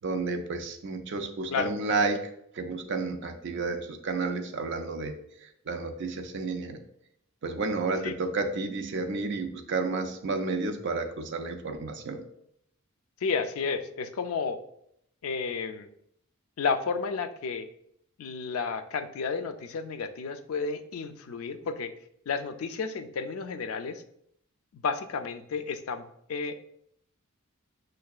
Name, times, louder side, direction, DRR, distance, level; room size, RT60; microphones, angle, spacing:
voice 1, 0.0-2.2 2.5-5.1 5.4-6.8 7.4-12.2, right 3 dB, 55° right, 6 dB, 0.4 m, -31 dB
voice 2, 13.2-14.6 15.2-15.9 16.6-17.7 18.2-21.9 22.3-24.0 24.7-26.0 26.3-26.6, left 5 dB, 75° left, 9 dB, 0.4 m, -32 dB
6.3 x 2.2 x 2.3 m, 0.72 s
head